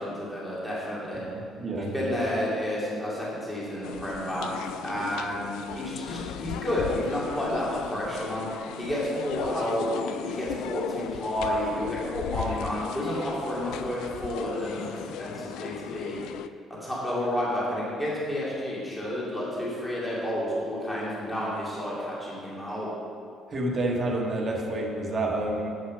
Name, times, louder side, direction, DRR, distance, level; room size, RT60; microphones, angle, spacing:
voice 1, 0.0-1.2 1.8-4.5 4.8-8.5 8.8-16.2 16.8-22.9, equal, 10° left, -7 dB, 2.4 m, -30 dB
voice 2, 1.3-2.1 23.5-25.7, right 2 dB, 25° right, -1 dB, 1.5 m, -29 dB
sound 1, 3.8-16.5, left 11 dB, 80° left, 0.3 m, -37 dB
8.3 x 8.1 x 6.2 m, 2.4 s
cardioid pair, 165°, 0 cm